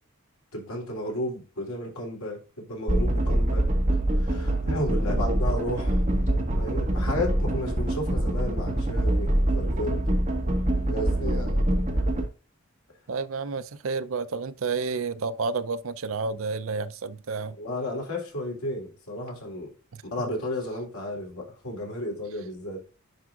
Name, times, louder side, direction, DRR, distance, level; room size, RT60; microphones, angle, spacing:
voice 1, 0.5-3.7 4.2-6.0 6.6-10.2 10.9-11.5 17.6-19.7 20.0-22.8, left 1 dB, 85° left, 3.4 m, -33 dB
sound 1, 2.9-12.3, right 1 dB, 35° right, 1.5 m, -25 dB
voice 2, 11.2-11.6 13.1-17.6 19.9-20.0, right 4 dB, 70° right, 0.6 m, -31 dB
10.5 x 4.8 x 2.4 m
head